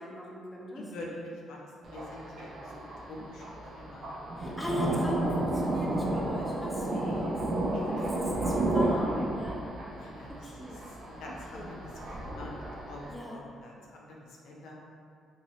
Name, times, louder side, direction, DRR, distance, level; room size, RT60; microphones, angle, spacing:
voice 1, 0.0-0.9 4.4-7.4 8.0-9.6 10.3-10.9 11.5-11.7 13.1-13.4, equal, 15° left, -4 dB, 0.6 m, -38 dB
voice 2, 0.8-4.1 6.8-7.2 7.7-8.1 10.0-10.5 11.1-11.8 12.2-14.0 14.3-14.8, left 1 dB, 80° left, -2 dB, 0.6 m, -45 dB
Thunder, 1.8-13.1, right 1 dB, 55° right, 0.6 m, -32 dB
3.0 x 2.7 x 2.9 m, 2.4 s
cardioid pair, 90°, 0 cm